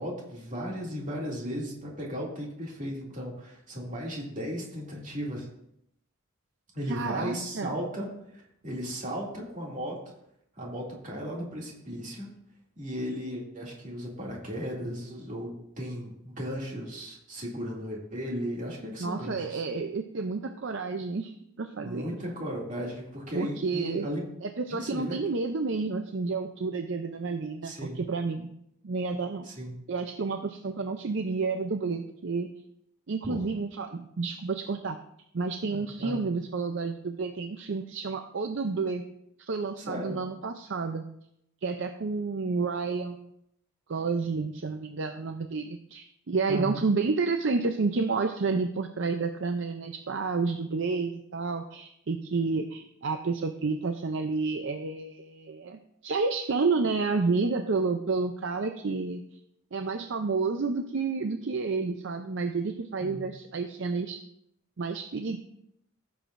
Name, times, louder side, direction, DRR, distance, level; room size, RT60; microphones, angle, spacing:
voice 1, 0.0-5.5 6.7-10.0 10.6-12.3 12.8-15.5 15.8-19.6 21.8-24.2 24.7-25.2 27.6-28.0 29.4-29.7 33.2-33.4 35.6-36.2 39.8-40.2 46.5-46.8 63.0-63.2, equal, 35° right, -3 dB, 2.5 m, -36 dB
voice 2, 6.9-7.7 19.0-22.2 23.3-24.1 24.4-29.5 29.9-32.5 33.1-35.0 35.3-39.0 39.4-41.1 41.6-43.3 43.9-59.2 59.7-64.2 64.8-65.4, right 4 dB, 60° right, 6 dB, 0.5 m, -30 dB
15.5 x 7.1 x 2.6 m, 0.76 s
head